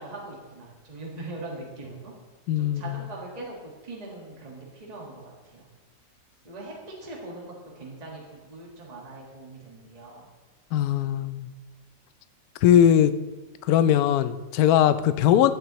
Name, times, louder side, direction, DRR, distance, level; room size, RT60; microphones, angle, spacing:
voice 1, 0.0-2.1 2.5-5.2 5.5-5.7 6.4-6.7 7.0-10.2, right 2 dB, 20° right, -3 dB, 1.7 m, -41 dB
voice 2, 2.5-3.0 10.7-11.5 12.6-13.1 13.6-15.5, left 10 dB, 70° left, 12 dB, 0.9 m, -20 dB
16.0 x 8.8 x 3.1 m, 1.2 s
omnidirectional pair, 1.9 m